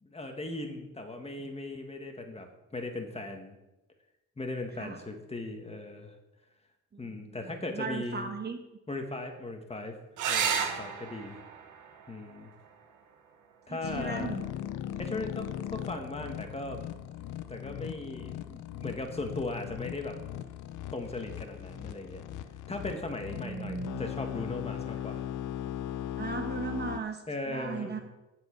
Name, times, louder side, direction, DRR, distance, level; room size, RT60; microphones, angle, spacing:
voice 1, 0.0-3.6 4.4-6.1 7.0-8.3 8.9-10.0 10.3-11.4 12.1-12.5 13.7-14.4 15.0-16.8 17.5-20.2 20.9-22.2 22.7-25.2 27.3-28.0, left 2 dB, 20° left, 4 dB, 1.7 m, -38 dB
voice 2, 6.9-8.6 13.7-14.5 23.4-24.0 26.2-28.0, right 5 dB, 35° right, 5 dB, 1.2 m, -37 dB
sound 1, 10.2-15.2 17.1-17.7 21.2-21.3 21.6-21.7, right 7 dB, 85° right, 1.3 m, -36 dB
sound 2, 13.8-27.0, left 11 dB, 80° left, 0.7 m, -38 dB
9.6 x 7.8 x 4.6 m, 0.99 s
cardioid pair, 90°, 30 cm